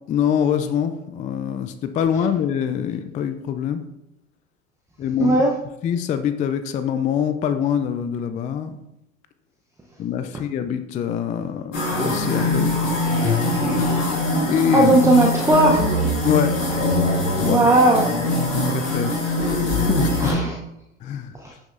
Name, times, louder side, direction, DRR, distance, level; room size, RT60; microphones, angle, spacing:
voice 1, 0.1-3.8 5.0-5.4 5.8-8.8 10.0-12.8 13.6-14.0 14.5-14.9 16.2-16.5 17.4-17.7 18.5-19.2 19.5-20.4 21.0-21.3, left 8 dB, 20° left, 9 dB, 0.4 m, -24 dB
voice 2, 5.2-5.5 14.7-15.8 17.4-18.1 20.2-20.6 21.4-21.5, right 2 dB, 10° right, -1 dB, 0.7 m, -17 dB
sound 1, 11.7-20.3, left 2 dB, 90° left, 2.4 m, -22 dB
7.6 x 6.3 x 2.5 m, 0.86 s
hypercardioid pair, 90°, 37 cm